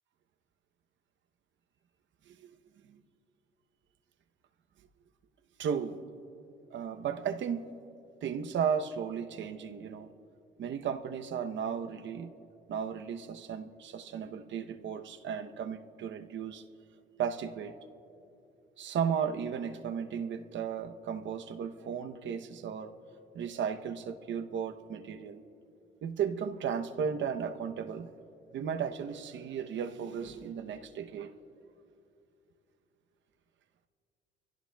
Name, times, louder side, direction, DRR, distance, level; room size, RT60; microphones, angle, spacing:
voice 1, 5.6-6.0 6.7-7.7 8.2-10.1 10.6-12.3 12.7-16.6 17.2-17.8 18.8-22.9 23.3-25.4 26.0-28.1 28.5-31.3, right 7 dB, 70° right, 7 dB, 0.8 m, -35 dB
25.0 x 16.0 x 2.3 m, 2.7 s
cardioid pair, 90°, 20 cm